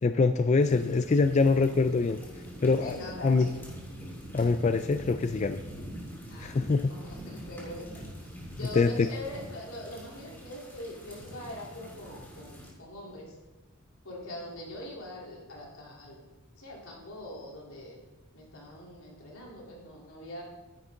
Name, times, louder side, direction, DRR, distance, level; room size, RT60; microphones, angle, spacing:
voice 1, 0.0-2.2 2.6-3.0 3.2-3.5 4.3-5.6 6.4-6.9 8.8-9.1, left 4 dB, 35° left, 9 dB, 0.3 m, -24 dB
sound 1, 0.6-12.7, equal, 10° left, 3.2 m, -44 dB
voice 2, 2.8-3.6 6.3-6.6 6.9-7.9 8.6-13.4 14.0-16.2 16.5-18.0 18.3-20.4, left 1 dB, 80° left, -3 dB, 3.6 m, -43 dB
12.0 x 10.5 x 3.9 m, 1.1 s
head